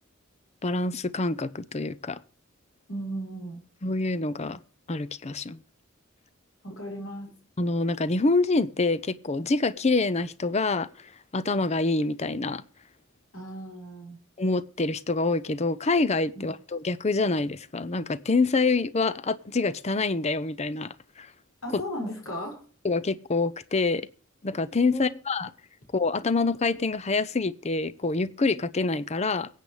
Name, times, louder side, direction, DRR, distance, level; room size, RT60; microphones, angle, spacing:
voice 1, 0.6-2.2 3.8-4.6 4.9-5.6 7.6-10.9 11.3-12.6 14.4-21.3 21.7-21.8 22.8-24.1 24.4-25.5 25.9-29.5, left 3 dB, 30° left, 0.6 m, -26 dB
voice 2, 2.9-3.6 6.6-7.3 13.3-14.2 16.3-16.5 21.6-22.6 24.9-25.2, equal, 85° left, 5.9 m, -36 dB
23.0 x 8.4 x 3.2 m
head